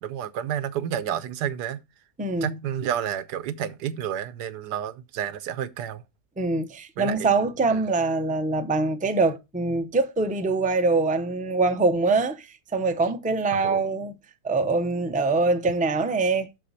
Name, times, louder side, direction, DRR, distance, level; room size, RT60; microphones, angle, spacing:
voice 1, 0.0-1.8 2.4-6.0 7.0-7.3 7.7-7.8 13.5-13.8, right 9 dB, 85° right, 1.3 m, -30 dB
voice 2, 2.2-2.5 6.4-14.1 14.4-16.6, right 3 dB, 10° right, 0.5 m, -24 dB
7.5 x 6.6 x 4.1 m
omnidirectional pair, 1.7 m